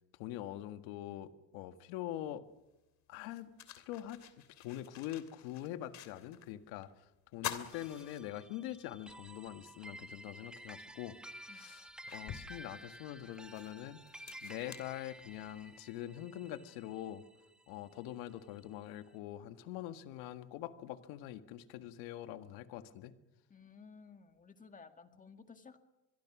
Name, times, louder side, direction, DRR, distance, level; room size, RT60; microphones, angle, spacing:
voice 1, 0.2-2.4 3.1-3.5 3.8-4.2 4.6-6.9 7.3-11.2 11.4-14.0 14.4-17.2 17.7-23.1, left 13 dB, 85° left, 9 dB, 1.9 m, -44 dB
sound 1, 2.5-2.6 3.1-6.5 6.8-6.9 7.3-8.8 9.3-9.4 10.8-10.9 11.5-15.7, left 10 dB, 50° left, 2.8 m, -48 dB
sound 2, 7.7-18.3, right 1 dB, ahead, 1.5 m, -52 dB
voice 2, 23.5-25.8, left 5 dB, 20° left, 7 dB, 1.9 m, -55 dB
26.0 x 22.0 x 6.2 m, 0.98 s
cardioid pair, 130°, 35 cm